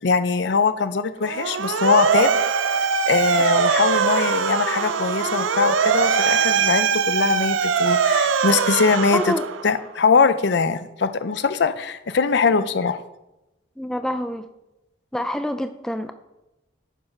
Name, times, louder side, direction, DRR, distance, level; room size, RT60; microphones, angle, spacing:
voice 1, 0.0-2.3 2.7-9.3 9.6-13.0, left 5 dB, 65° left, 12 dB, 0.5 m, -21 dB
Motor vehicle (road) / Siren, 1.2-9.8, right 6 dB, 85° right, 0.5 m, -21 dB
voice 2, 9.1-9.4 13.8-14.5 15.1-16.1, equal, 5° left, 8 dB, 0.4 m, -26 dB
9.8 x 5.5 x 5.8 m, 0.96 s
head